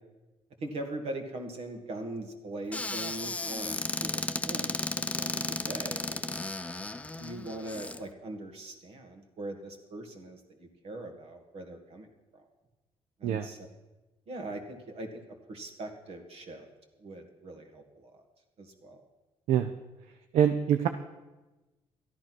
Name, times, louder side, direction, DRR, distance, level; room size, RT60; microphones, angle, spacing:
voice 1, 0.6-6.2 7.2-12.1 12.3-12.4 13.2-13.6 14.3-16.7 17.0-18.2 18.6-19.0, right 1 dB, 70° right, 5 dB, 2.1 m, -41 dB
Squeak / Cupboard open or close, 2.7-8.0, left 2 dB, 15° left, 0.7 m, -34 dB
voice 2, 20.3-20.9, right 9 dB, 85° right, 8 dB, 0.7 m, -24 dB
13.0 x 10.5 x 6.1 m, 1.1 s
cardioid pair, 85°, 11 cm